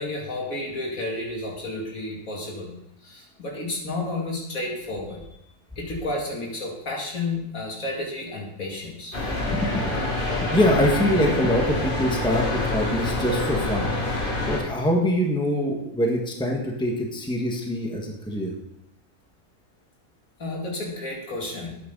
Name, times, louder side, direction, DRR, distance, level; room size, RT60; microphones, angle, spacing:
voice 1, 0.0-2.7 3.0-5.2 5.8-9.1 20.4-21.8, left 2 dB, 70° left, -2 dB, 3.0 m, -31 dB
sound 1, 9.1-14.6, left 2 dB, 35° left, 2.1 m, -26 dB
voice 2, 9.5-10.0 10.4-13.9 14.4-18.5, equal, 5° left, 0 dB, 1.5 m, -24 dB
12.5 x 8.9 x 3.9 m, 0.81 s
omnidirectional pair, 1.5 m